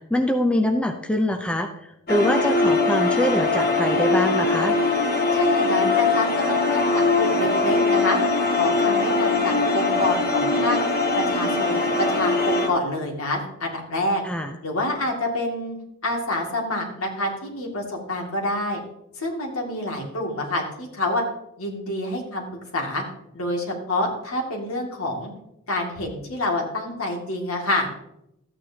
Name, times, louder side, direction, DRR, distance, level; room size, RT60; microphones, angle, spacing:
voice 1, 0.1-1.7 2.1-4.8 14.2-14.5, left 1 dB, 5° left, 4 dB, 0.5 m, -24 dB
sound 1, 2.1-12.7, left 3 dB, 45° left, 1.6 m, -21 dB
voice 2, 5.3-8.2 8.6-10.8 11.1-14.2 14.6-15.8 16.0-18.8 19.2-21.2 21.6-23.0 23.3-25.3 25.7-27.9, left 1 dB, 70° left, 0 dB, 2.3 m, -27 dB
13.5 x 9.0 x 2.9 m, 0.82 s
head